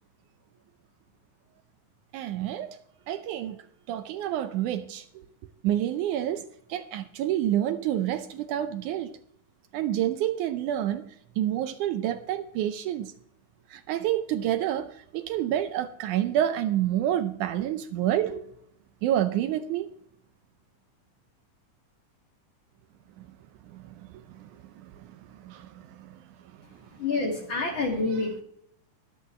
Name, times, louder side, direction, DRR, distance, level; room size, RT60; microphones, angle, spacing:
voice 1, 2.1-2.8 3.1-3.6 3.9-5.3 5.6-9.2 9.7-13.1 13.7-18.4 19.0-19.9 23.2-23.3 23.7-26.2, right 11 dB, 75° right, 2.0 m, -29 dB
voice 2, 27.0-28.4, left 3 dB, 40° left, 2.5 m, -27 dB
21.0 x 8.0 x 3.2 m
omnidirectional pair, 3.7 m